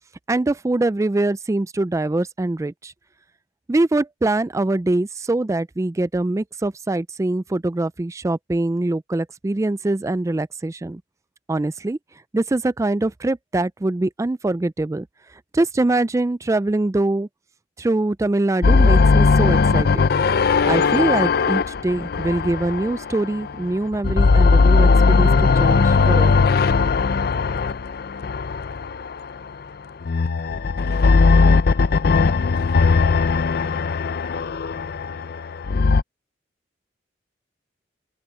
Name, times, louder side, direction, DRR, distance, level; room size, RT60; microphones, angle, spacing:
voice 1, 0.3-2.9 3.7-11.0 11.5-12.0 12.3-15.1 15.5-17.3 17.8-20.0 20.6-26.5, right 2 dB, 15° right, 0.3 m, -23 dB
sound 1, 18.6-23.6 23.9-29.3 30.0-36.0, left 4 dB, 55° left, 0.5 m, -18 dB
open air
head